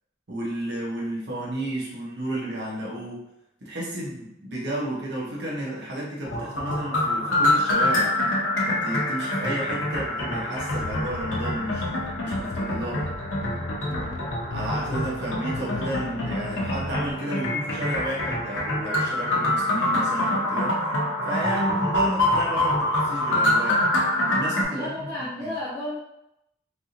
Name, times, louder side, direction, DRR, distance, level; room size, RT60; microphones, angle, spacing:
voice 1, 0.3-3.2 3.6-8.2 8.7-13.1 14.5-20.8 21.2-23.9 24.3-25.1 25.4-25.5, right 1 dB, 60° right, -5 dB, 0.9 m, -32 dB
sound 1, 6.2-24.6, left 1 dB, 85° left, 0.7 m, -25 dB
sound 2, 10.7-17.1, left 3 dB, 65° left, 0.4 m, -36 dB
voice 2, 13.9-14.3 24.7-26.0, left 1 dB, 20° left, -10 dB, 0.7 m, -33 dB
3.4 x 2.8 x 2.5 m, 0.82 s
head